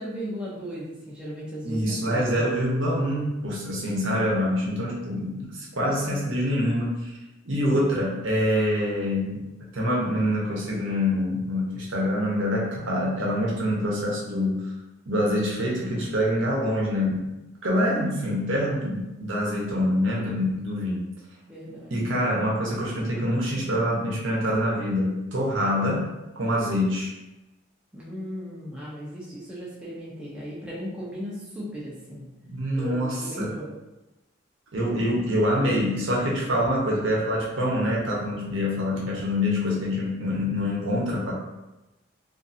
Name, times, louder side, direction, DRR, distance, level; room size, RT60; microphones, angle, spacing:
voice 1, 0.0-2.4 21.5-22.0 27.9-32.3 32.7-33.7, equal, 5° right, -8 dB, 0.5 m, -36 dB
voice 2, 1.6-7.1 7.4-9.4 9.7-14.7 15.1-17.3 17.6-21.0 21.9-26.1 26.4-27.1 32.4-33.5 34.7-41.3, equal, 70° right, -4 dB, 0.7 m, -25 dB
2.5 x 2.5 x 2.6 m, 0.99 s
head